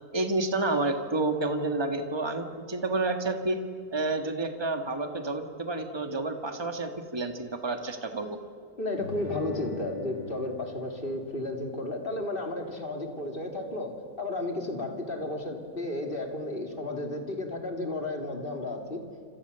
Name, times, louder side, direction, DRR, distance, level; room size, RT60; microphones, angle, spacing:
voice 1, 0.1-3.6 3.9-8.4, right 2 dB, 15° right, 6 dB, 1.8 m, -29 dB
voice 2, 8.8-19.0, left 2 dB, 35° left, 3 dB, 3.3 m, -33 dB
Guitar, 9.0-14.0, left 2 dB, 80° left, 7.9 m, -45 dB
27.5 x 27.0 x 7.0 m, 2.1 s
omnidirectional pair, 1.6 m